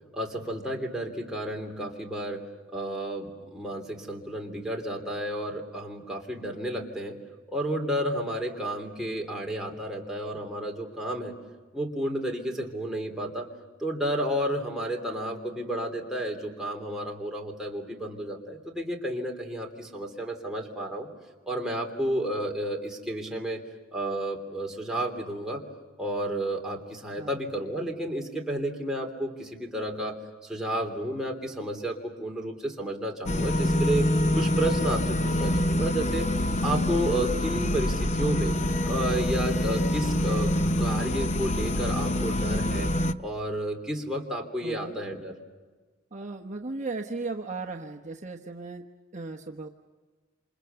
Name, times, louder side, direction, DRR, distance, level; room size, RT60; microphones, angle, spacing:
voice 1, 0.1-2.4 2.7-7.2 7.5-11.4 11.7-13.5 13.8-21.1 21.5-23.6 23.9-25.6 26.0-34.1 34.4-36.3 36.6-38.6 38.9-42.9 43.2-45.3, right 1 dB, 5° right, -1 dB, 3.2 m, -31 dB
sound 1, 33.3-43.1, left 1 dB, 35° left, 0.7 m, -26 dB
voice 2, 44.6-44.9 46.1-48.8 49.1-49.7, right 3 dB, 35° right, 2 dB, 1.2 m, -36 dB
28.0 x 27.5 x 7.0 m, 1.4 s
head